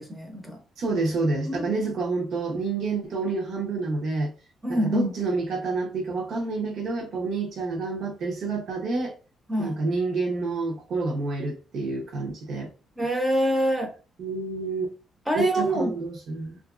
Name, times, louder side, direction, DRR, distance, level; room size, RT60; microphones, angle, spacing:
voice 1, 0.0-0.6 1.5-1.6 4.6-5.1 9.5-9.8 13.0-13.9 15.3-15.9, right 1 dB, 10° right, 0.6 m, -25 dB
voice 2, 0.8-4.3 4.8-9.1 9.6-12.7 14.2-14.9 15.3-16.6, right 3 dB, 60° right, 0.8 m, -28 dB
2.9 x 2.5 x 2.4 m
cardioid pair, 140°, 0 cm